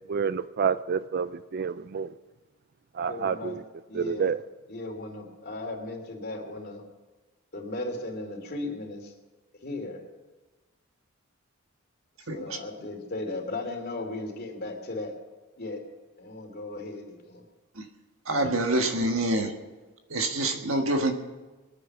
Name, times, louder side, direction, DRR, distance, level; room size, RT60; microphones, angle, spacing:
voice 1, 0.1-2.1 3.0-3.6 3.9-4.4, right 6 dB, 45° right, 14 dB, 0.4 m, -28 dB
voice 2, 3.1-3.6 3.9-4.3 4.7-6.8 7.5-9.1 9.6-10.0 12.2-15.1 15.6-15.8 16.2-17.4, left 2 dB, 45° left, 2 dB, 2.9 m, -36 dB
voice 3, 12.3-12.6 17.8-17.9 18.2-19.5 20.1-21.1, right 1 dB, 65° right, 5 dB, 1.6 m, -26 dB
22.5 x 9.7 x 6.0 m, 1.2 s
head